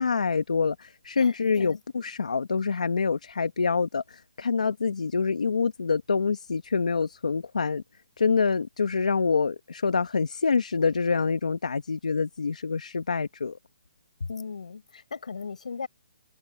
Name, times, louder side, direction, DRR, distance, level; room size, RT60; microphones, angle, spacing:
voice 1, 0.0-7.8 8.2-13.6, left 5 dB, 90° left, 1.4 m, -26 dB
voice 2, 1.2-1.8 14.3-15.9, left 5 dB, 70° left, 5.6 m, -37 dB
hypercardioid pair, 170°, 4 cm